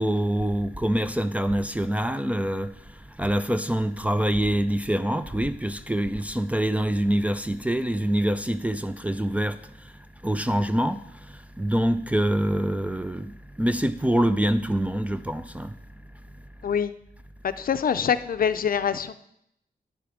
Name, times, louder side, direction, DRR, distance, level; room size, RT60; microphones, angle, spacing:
voice 1, 0.0-2.7 3.2-9.6 10.2-11.0 11.6-13.3 13.6-15.7, right 1 dB, 10° right, 0.3 m, -25 dB
voice 2, 16.6-16.9 17.4-19.1, left 7 dB, 65° left, 0.5 m, -25 dB
9.7 x 6.8 x 4.9 m
wide cardioid pair, 165°, 16 cm